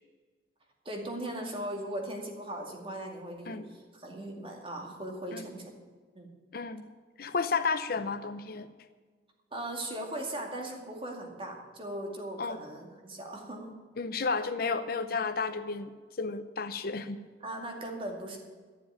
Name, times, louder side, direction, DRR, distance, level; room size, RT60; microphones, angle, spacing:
voice 1, 0.8-5.8 6.1-6.3 9.5-13.8 17.4-18.4, right 1 dB, 30° right, 1 dB, 2.4 m, -39 dB
voice 2, 6.5-6.8 7.2-8.7 12.4-12.6 14.0-17.2, left 4 dB, 55° left, 11 dB, 0.7 m, -32 dB
12.5 x 7.4 x 9.6 m, 1.4 s
head